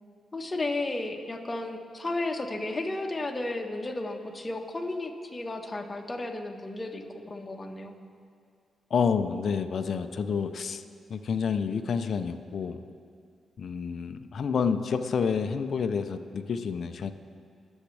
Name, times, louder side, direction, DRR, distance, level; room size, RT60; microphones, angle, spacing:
voice 1, 0.3-7.9, left 2 dB, 30° left, 3 dB, 1.4 m, -33 dB
voice 2, 8.9-10.8 11.1-12.8 13.6-17.1, left 6 dB, 65° left, 8 dB, 0.5 m, -29 dB
21.5 x 7.2 x 3.4 m, 2.2 s
supercardioid pair, 55°, 0 cm